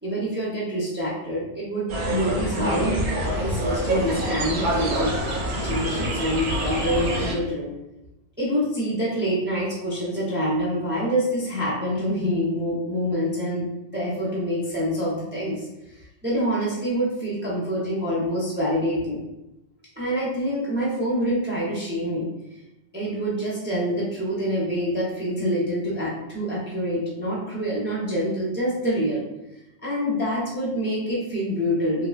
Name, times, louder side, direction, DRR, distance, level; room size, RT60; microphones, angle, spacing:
voice 1, 0.0-3.0 3.2-7.7 8.4-15.7 16.2-19.2 20.0-22.3 22.9-29.3 29.8-32.1, equal, 15° right, -7 dB, 0.5 m, -26 dB
sound 1, 1.9-7.3, right 1 dB, 50° right, 0.7 m, -26 dB
3.4 x 2.2 x 2.4 m, 0.93 s
omnidirectional pair, 1.2 m